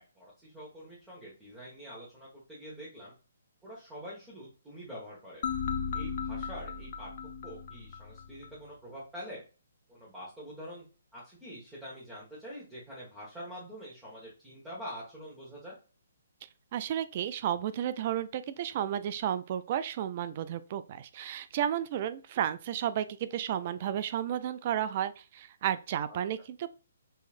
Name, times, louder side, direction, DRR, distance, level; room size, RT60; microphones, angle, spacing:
voice 1, 0.0-3.1 3.6-5.4 5.9-7.1 7.4-9.4 9.9-10.9 11.1-15.8 26.1-26.2, equal, 10° right, -8 dB, 1.5 m, -45 dB
sound 1, 5.4-8.5, left 6 dB, 50° left, 0.6 m, -36 dB
voice 2, 16.7-26.7, right 10 dB, 40° right, 13 dB, 0.4 m, -32 dB
5.6 x 3.1 x 2.5 m, 0.34 s
hypercardioid pair, 140°, 0 cm